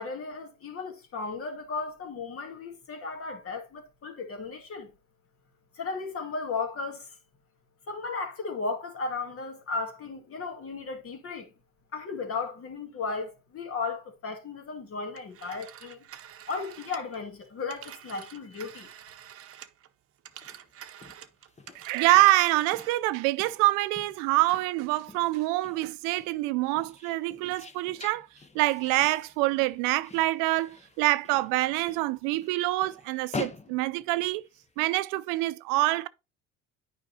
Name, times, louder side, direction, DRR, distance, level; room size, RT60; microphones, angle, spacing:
voice 1, 0.0-4.9 5.7-7.1 7.9-11.5 11.9-16.0 16.5-18.9, left 4 dB, 45° left, 2.1 m, -35 dB
Telephone, 15.2-19.9 20.2-23.1, right 10 dB, 45° right, 0.8 m, -48 dB
sound 1, 20.3-34.7, left 4 dB, 20° left, 0.9 m, -46 dB
voice 2, 21.7-28.3 28.5-34.4 34.8-36.1, right 18 dB, 80° right, 0.5 m, -26 dB
9.2 x 5.1 x 2.8 m
supercardioid pair, 80°, 31 cm